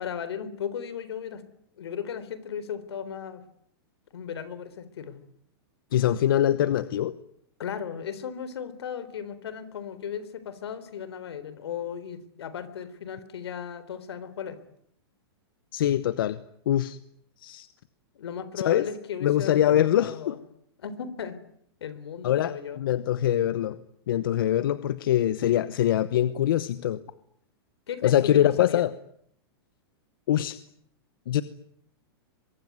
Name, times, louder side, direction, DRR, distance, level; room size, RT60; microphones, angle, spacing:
voice 1, 0.0-1.4 1.8-3.4 4.1-5.2 7.6-14.6 18.1-20.4 20.8-21.4 21.8-22.8 27.9-28.8, left 8 dB, 80° left, 15 dB, 3.8 m, -36 dB
voice 2, 5.9-7.1 15.7-16.4 16.7-17.0 17.4-17.7 18.6-18.9 19.2-20.3 22.2-23.8 24.1-27.0 28.0-28.9 30.3-30.6 31.3-31.4, left 11 dB, 60° left, 14 dB, 1.1 m, -23 dB
23.5 x 23.0 x 9.5 m, 0.70 s
supercardioid pair, 175°, 13 cm